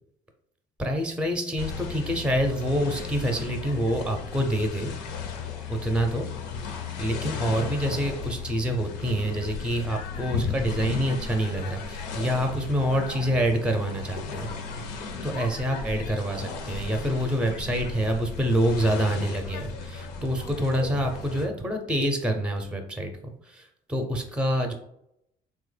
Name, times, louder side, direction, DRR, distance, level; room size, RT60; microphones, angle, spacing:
voice 1, 0.8-4.9 5.7-6.3 6.6-14.5 14.8-24.7, equal, 5° right, 4 dB, 0.5 m, -27 dB
sound 1, 1.6-21.5, left 5 dB, 90° left, 0.5 m, -35 dB
3.2 x 2.1 x 3.2 m, 0.75 s
hypercardioid pair, 65°, 20 cm